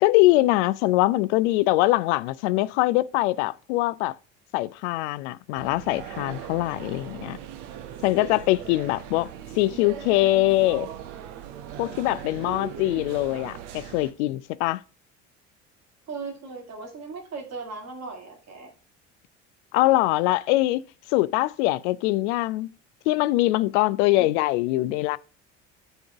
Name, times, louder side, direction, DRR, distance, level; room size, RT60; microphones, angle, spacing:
voice 1, 0.0-4.1 4.5-7.4 8.0-9.3 9.6-10.9 11.8-14.8 19.7-20.8 21.1-22.7 23.1-25.2, left 18 dB, 65° left, 0.5 m, -23 dB
sound 1, 5.6-14.1, right 10 dB, 65° right, 0.9 m, -39 dB
voice 2, 12.4-13.0 16.1-18.7 24.2-24.3, right 4 dB, 45° right, 2.4 m, -38 dB
10.5 x 3.9 x 3.5 m
figure-of-eight pair, 55°, 37 cm